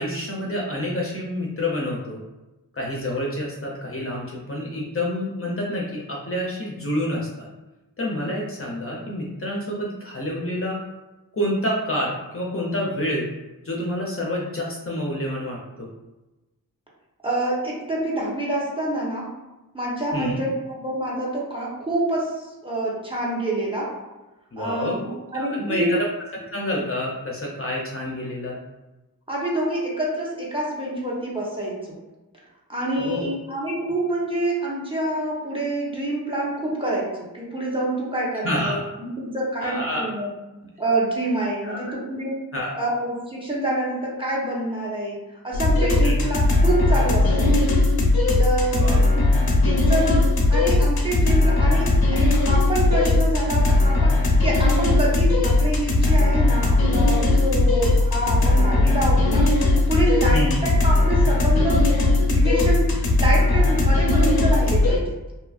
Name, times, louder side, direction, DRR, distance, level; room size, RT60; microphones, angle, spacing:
voice 1, 0.0-2.2 2.7-7.5 8.0-10.8 11.3-13.3 13.6-15.9 20.1-20.4 24.5-25.0 25.3-26.0 26.5-28.6 33.0-33.3 38.4-38.8 39.6-40.0 41.6-41.9 42.5-42.7 46.0-46.1 48.7-49.0 60.3-60.6, left 1 dB, 40° left, -2 dB, 0.5 m, -28 dB
voice 2, 17.2-19.3 19.7-24.0 24.6-25.9 29.3-32.0 32.7-40.3 40.8-42.4 42.8-47.8 48.4-49.3 49.6-59.5 59.9-65.1, right 1 dB, 15° right, -5 dB, 0.7 m, -27 dB
sound 1, 45.5-65.0, left 2 dB, 85° left, 0.6 m, -18 dB
2.6 x 2.4 x 2.3 m, 1.1 s
wide cardioid pair, 70°, 36 cm